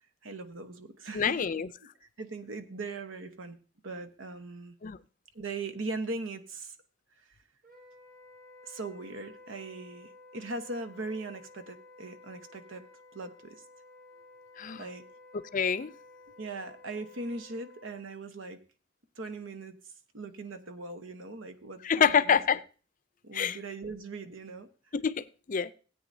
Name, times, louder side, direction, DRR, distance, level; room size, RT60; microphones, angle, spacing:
voice 1, 0.2-1.4 2.2-3.6 3.8-4.8 5.3-6.8 8.6-12.8 13.1-13.6 14.8-15.0 16.4-18.6 19.2-19.8 20.1-22.4 23.2-24.7, right 3 dB, 85° right, 1.1 m, -40 dB
voice 2, 1.1-1.7 4.8-5.0 14.6-14.9 15.5-15.9 21.8-22.6 23.3-23.6 24.9-25.7, left 7 dB, 45° left, 0.4 m, -27 dB
Wind instrument woodwind instrument, 7.6-18.0, left 2 dB, 45° right, 4.5 m, -54 dB
17.0 x 8.9 x 2.7 m
head